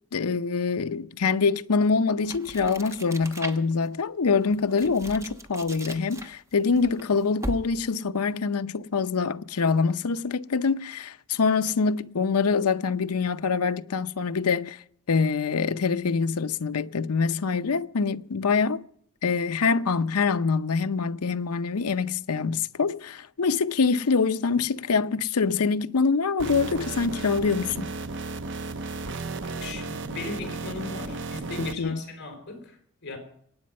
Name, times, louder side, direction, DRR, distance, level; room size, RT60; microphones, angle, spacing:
voice 1, 0.1-14.8 15.1-18.9 19.2-27.9 31.6-32.0, left 5 dB, 80° left, 0.7 m, -25 dB
sound 1, 2.2-3.9 4.4-7.9, right 1 dB, 15° right, 1.1 m, -39 dB
sound 2, 26.4-31.7, right 3 dB, 55° right, 0.9 m, -34 dB
voice 2, 29.4-33.2, left 2 dB, 50° left, 4.7 m, -37 dB
24.0 x 9.5 x 5.4 m
head